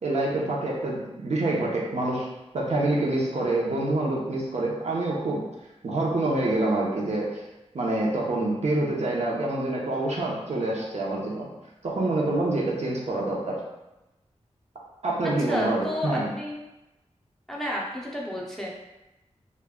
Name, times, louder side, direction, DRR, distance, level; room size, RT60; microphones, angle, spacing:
voice 1, 0.0-2.3 2.5-5.4 5.8-7.4 7.7-11.5 11.8-13.6 15.0-16.3, right 2 dB, 65° right, -4 dB, 0.6 m, -26 dB
voice 2, 15.2-16.6 17.5-18.7, left 1 dB, 5° left, -4 dB, 0.5 m, -31 dB
2.2 x 2.1 x 3.5 m, 0.98 s
wide cardioid pair, 105°, 12 cm